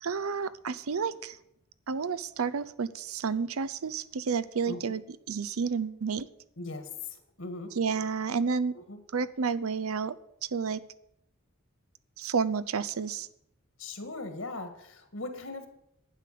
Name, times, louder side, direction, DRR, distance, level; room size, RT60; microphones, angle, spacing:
voice 1, 0.0-1.4 1.9-5.0 5.3-6.3 7.8-8.7 9.1-10.2 10.5-10.8 12.2-13.3, right 5 dB, 90° right, 15 dB, 0.6 m, -30 dB
voice 2, 6.6-6.9 7.4-7.7 8.7-9.0 13.8-15.7, left 2 dB, 65° left, 7 dB, 1.9 m, -39 dB
11.5 x 9.2 x 6.8 m, 0.78 s
head